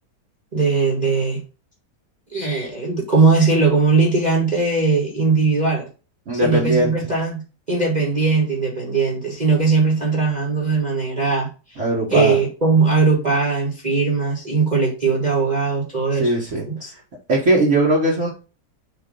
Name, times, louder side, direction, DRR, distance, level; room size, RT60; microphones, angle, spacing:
voice 1, 0.5-1.4 2.3-5.9 6.3-7.4 7.7-11.8 12.1-16.3 16.7-16.9, right 4 dB, 25° right, -3 dB, 1.5 m, -19 dB
voice 2, 6.3-6.9 11.8-12.4 16.2-16.7 17.3-18.3, right 1 dB, 45° right, -3 dB, 1.6 m, -19 dB
6.8 x 2.9 x 5.2 m, 0.33 s
omnidirectional pair, 1.9 m